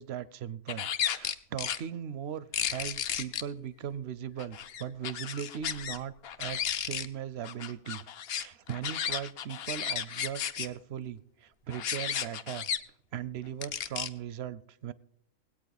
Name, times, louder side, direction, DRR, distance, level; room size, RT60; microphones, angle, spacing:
voice 1, 0.0-6.1 6.4-8.0 8.3-12.7 13.1-14.9, right 9 dB, 60° right, 17 dB, 0.7 m, -39 dB
sound 1, 0.7-1.8 2.5-3.4 4.4-6.0 6.2-7.1 7.4-10.7 11.7-12.8 13.6-14.1, left 9 dB, 60° left, 0.7 m, -33 dB
19.5 x 8.6 x 4.1 m, 0.72 s
omnidirectional pair, 1.4 m